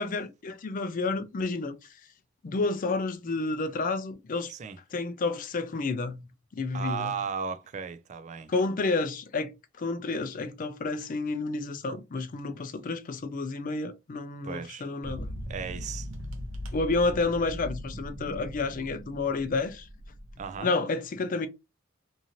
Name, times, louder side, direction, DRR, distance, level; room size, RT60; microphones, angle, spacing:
voice 1, 0.0-1.8 2.4-4.5 4.9-6.3 6.5-7.1 8.5-15.3 16.7-19.9 20.6-21.5, left 3 dB, 45° left, 0.4 m, -30 dB
voice 2, 6.7-8.5 14.4-14.8 15.5-16.1 20.4-20.7, right 6 dB, 35° right, 0.3 m, -35 dB
sound 1, 15.0-20.6, equal, 70° right, 0.7 m, -39 dB
2.7 x 2.5 x 2.9 m
head